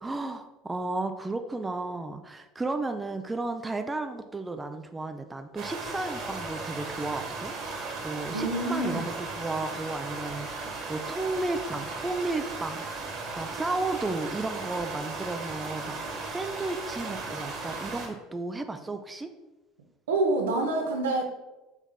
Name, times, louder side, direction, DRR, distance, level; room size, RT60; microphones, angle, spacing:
voice 1, 0.0-19.3, right 2 dB, 15° right, 7 dB, 0.3 m, -33 dB
sound 1, 5.6-18.1, right 3 dB, 45° right, 1.4 m, -36 dB
voice 2, 8.3-9.0 20.1-21.3, right 2 dB, 75° right, 3 dB, 0.6 m, -27 dB
5.6 x 3.4 x 2.2 m, 1.0 s
figure-of-eight pair, 70°, 0 cm